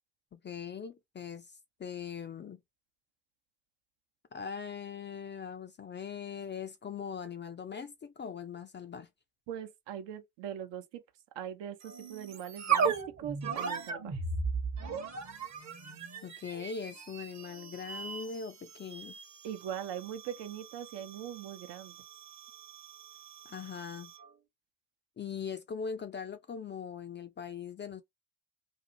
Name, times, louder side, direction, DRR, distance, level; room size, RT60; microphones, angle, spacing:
voice 1, 0.3-2.6 4.3-9.1 16.2-19.2 23.4-24.1 25.2-28.0, left 6 dB, 25° left, 0.4 m, -41 dB
voice 2, 9.5-11.0 11.3-14.2 19.4-21.9, right 10 dB, 60° right, 0.8 m, -41 dB
sound 1, 11.8-24.3, right 6 dB, 35° right, 1.0 m, -37 dB
2.7 x 2.4 x 2.7 m
hypercardioid pair, 60°, 47 cm